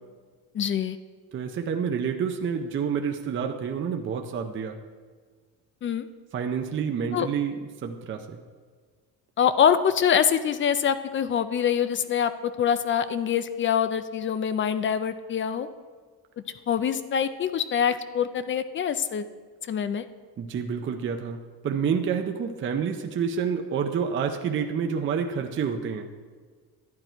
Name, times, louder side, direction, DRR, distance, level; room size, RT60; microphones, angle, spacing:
voice 1, 0.5-1.0 5.8-6.1 7.1-7.3 9.4-15.7 16.7-19.2 19.7-20.1, left 8 dB, 30° left, 12 dB, 0.4 m, -24 dB
voice 2, 1.3-4.8 6.3-8.4 20.4-26.1, right 6 dB, 30° right, 4 dB, 0.6 m, -28 dB
11.5 x 11.0 x 4.4 m, 1.5 s
cardioid pair, 175°, 39 cm